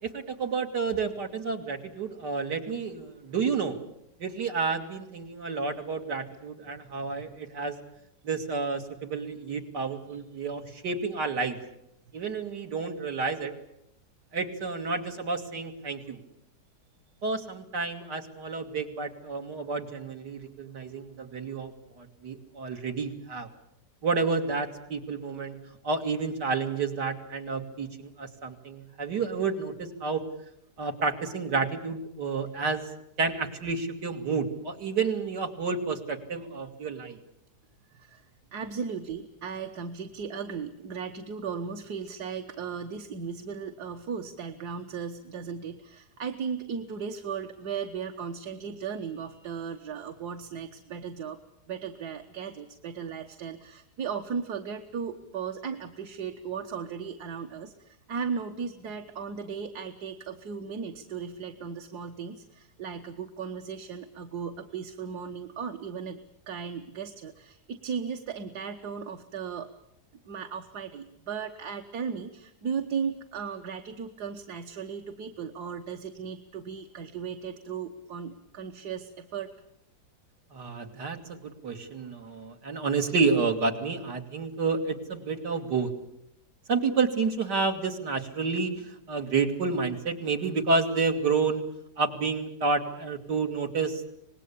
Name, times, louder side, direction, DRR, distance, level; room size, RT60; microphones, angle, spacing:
voice 1, 0.0-3.8 4.2-7.8 8.2-11.6 12.1-13.5 14.3-16.2 17.2-23.5 24.0-30.2 30.8-32.8 33.2-37.2 80.5-85.9 86.7-91.6 92.0-94.1, right 4 dB, 90° right, 4 dB, 2.9 m, -30 dB
voice 2, 37.9-38.3 38.5-51.4 51.7-66.2 66.5-69.7 70.3-79.5, right 6 dB, 70° right, 5 dB, 1.7 m, -36 dB
26.0 x 20.0 x 8.5 m, 0.77 s
omnidirectional pair, 1.8 m